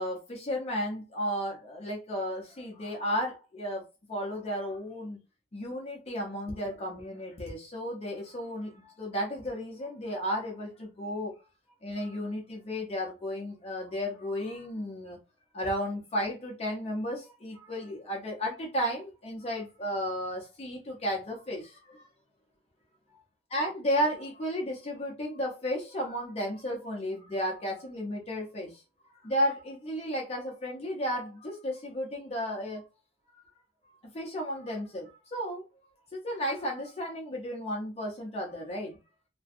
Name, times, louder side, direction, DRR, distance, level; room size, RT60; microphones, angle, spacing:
voice 1, 0.0-3.8 4.1-5.2 5.5-11.3 11.8-15.2 15.5-22.1 23.5-28.8 29.2-32.8 33.3-33.4 34.1-35.6 36.1-38.9, equal, 30° left, 0.6 m, -33 dB
2.5 x 2.1 x 2.5 m
head